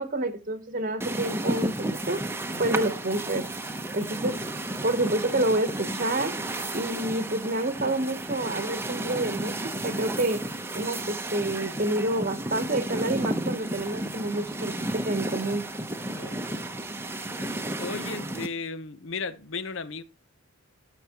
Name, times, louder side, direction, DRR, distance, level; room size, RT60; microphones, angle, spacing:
voice 1, 0.0-2.2 2.6-3.5 3.9-4.4 4.8-6.4 6.7-10.4 10.7-15.6, right 1 dB, 40° right, 1.0 m, -28 dB
sound 1, 1.0-18.5, right 1 dB, 10° right, 0.8 m, -32 dB
voice 2, 4.0-4.5 16.2-16.4 17.4-20.0, left 4 dB, 60° left, 0.8 m, -36 dB
12.5 x 6.1 x 2.9 m
head